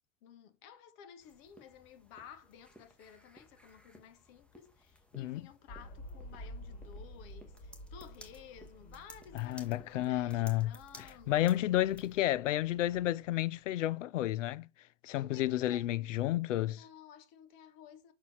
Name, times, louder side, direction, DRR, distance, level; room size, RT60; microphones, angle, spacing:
voice 1, 0.2-11.6 15.1-15.9 16.7-18.1, left 8 dB, 50° left, 1.4 m, -55 dB
sound 1, 1.2-12.2, equal, 5° left, 1.3 m, -58 dB
sound 2, 5.7-13.7, equal, 25° left, 2.9 m, -51 dB
voice 2, 9.3-10.7 11.0-14.7 15.0-16.8, left 14 dB, 75° left, 0.6 m, -31 dB
6.2 x 4.1 x 6.2 m
hypercardioid pair, 115°, 38 cm